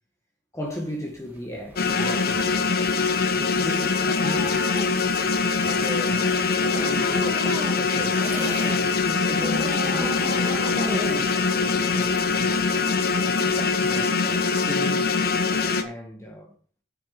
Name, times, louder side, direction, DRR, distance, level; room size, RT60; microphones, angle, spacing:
voice 1, 0.5-2.7 3.4-4.7 5.6-8.3 8.6-12.6 13.2-15.2 15.8-16.5, left 1 dB, 15° left, 1.8 m, -36 dB
sound 1, 0.7-8.8 9.1-12.8, equal, 10° right, 2.2 m, -36 dB
sound 2, 1.8-15.8, left 4 dB, 55° left, 1.1 m, -23 dB
9.2 x 6.9 x 6.0 m
head